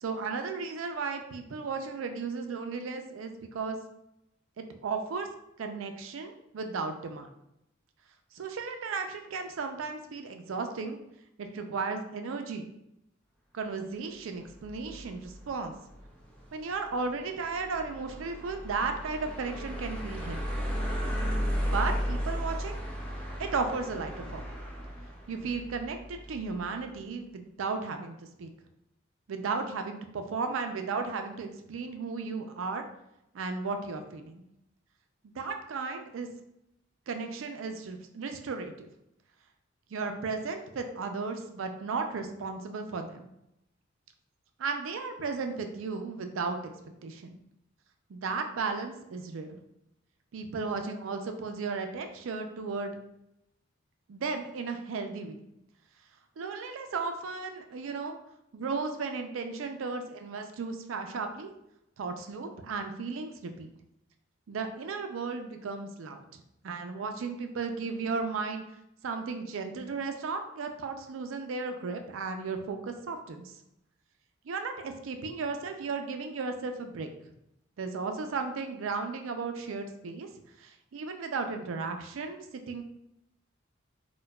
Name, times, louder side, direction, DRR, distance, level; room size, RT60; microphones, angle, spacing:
voice 1, 0.0-3.8 4.6-5.3 5.6-7.3 8.3-11.0 11.4-12.7 13.5-15.7 16.5-20.4 21.6-22.8 23.4-24.4 25.3-28.5 29.3-32.8 33.3-34.4 35.3-36.3 37.1-38.9 39.9-43.3 44.6-47.4 48.1-49.6 50.3-52.9 54.1-55.4 56.4-58.2 58.5-61.5 62.0-63.7 64.5-68.6 69.0-73.6 74.5-77.1 77.8-80.3 80.6-82.8, right 4 dB, 75° right, 6 dB, 0.4 m, -35 dB
sound 1, 14.5-26.6, equal, 5° left, 0.5 m, -35 dB
4.5 x 2.2 x 2.2 m, 0.84 s
head